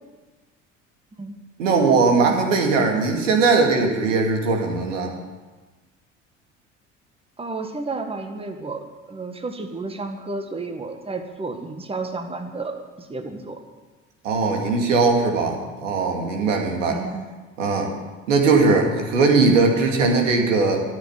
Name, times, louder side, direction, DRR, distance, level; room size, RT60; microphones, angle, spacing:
voice 1, 1.6-5.1 14.2-17.0 17.6-17.9 18.3-20.8, right 4 dB, 75° right, 2 dB, 2.3 m, -19 dB
voice 2, 7.4-13.6 16.9-17.3, right 3 dB, 15° right, 5 dB, 1.6 m, -32 dB
14.0 x 7.5 x 9.8 m, 1.3 s
figure-of-eight pair, 60°, 38 cm